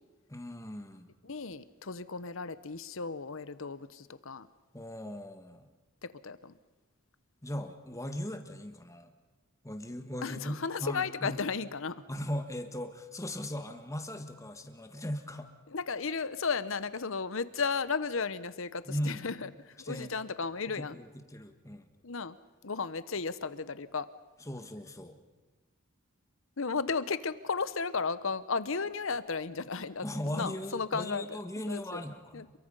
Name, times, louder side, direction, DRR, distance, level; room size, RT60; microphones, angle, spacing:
voice 1, 0.3-1.1 4.7-5.7 7.4-9.1 9.6-11.4 12.1-15.5 18.9-19.3 19.8-20.1 20.7-21.9 24.5-25.2 30.0-32.5, left 1 dB, 15° left, 7 dB, 1.6 m, -38 dB
voice 2, 1.2-4.5 6.0-6.5 10.2-12.0 15.7-21.0 22.0-22.4 22.6-24.1 26.6-31.4 31.7-32.0 32.3-32.5, left 5 dB, 70° left, 15 dB, 1.0 m, -34 dB
28.5 x 22.5 x 5.6 m, 1.3 s
head